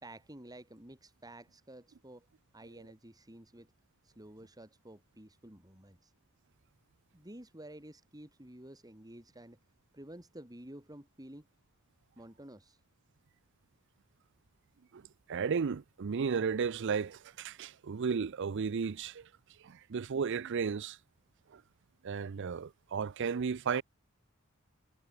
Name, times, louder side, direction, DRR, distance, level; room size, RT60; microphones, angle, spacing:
voice 1, 0.0-2.3 2.5-3.7 4.0-6.1 7.1-9.6 9.9-11.5 12.2-12.8, right 1 dB, 20° right, 4.1 m, -51 dB
voice 2, 15.3-19.3 19.6-21.0 21.5-21.6 22.0-23.8, right 6 dB, 60° right, 0.5 m, -34 dB
head